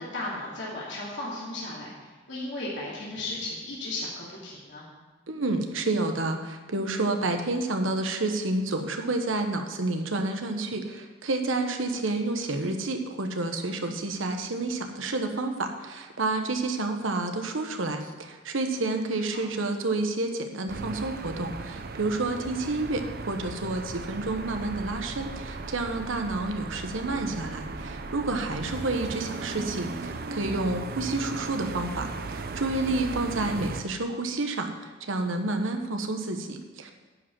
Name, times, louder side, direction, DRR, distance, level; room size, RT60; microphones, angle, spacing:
voice 1, 0.0-4.9 18.8-19.5, left 2 dB, 65° left, -6 dB, 2.6 m, -36 dB
voice 2, 5.3-36.9, right 2 dB, 85° right, 5 dB, 1.1 m, -29 dB
sound 1, 20.7-33.8, right 3 dB, 50° right, 0.6 m, -37 dB
10.5 x 5.2 x 7.3 m, 1.3 s
head